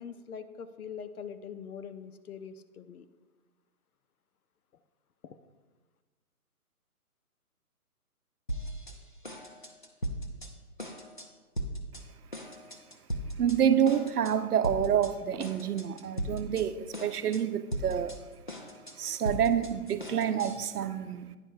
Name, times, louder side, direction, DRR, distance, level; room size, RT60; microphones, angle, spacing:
voice 1, 0.0-3.1 5.2-5.4, left 7 dB, 70° left, 11 dB, 0.7 m, -43 dB
sound 1, 8.5-9.0 9.2-10.5 10.8-11.3 11.6-12.0 12.3-13.6 13.9-14.3 14.6-15.1 15.4-16.6 16.9-17.4 17.7-20.7, equal, 35° left, 0.4 m, -37 dB
voice 2, 13.4-18.2 18.9-21.4, right 9 dB, 80° right, 12 dB, 0.7 m, -28 dB
9.7 x 5.1 x 4.5 m, 1.2 s
hypercardioid pair, 170°, 45 cm